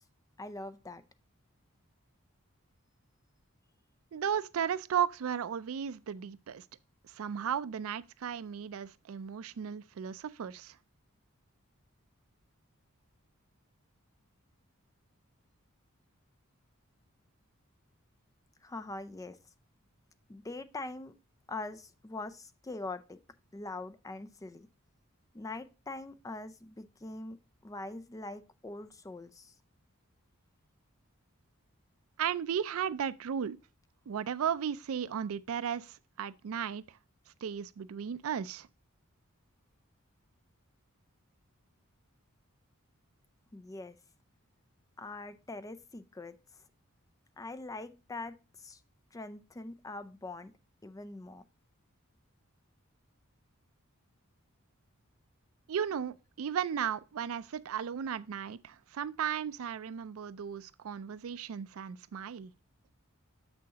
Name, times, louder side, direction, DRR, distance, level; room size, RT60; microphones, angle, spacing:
voice 1, 0.4-1.0 18.6-19.4 20.3-21.1 21.5-23.2 23.5-24.7 25.3-27.4 27.6-29.5 43.5-44.0 45.0-46.4 47.4-48.8 49.1-50.5 50.8-51.4, left 2 dB, 15° left, 0.4 m, -43 dB
voice 2, 4.1-6.6 7.0-10.8 32.2-33.6 34.1-36.8 37.4-38.7 55.7-62.5, right 8 dB, 70° right, 0.4 m, -35 dB
7.4 x 6.2 x 2.8 m
head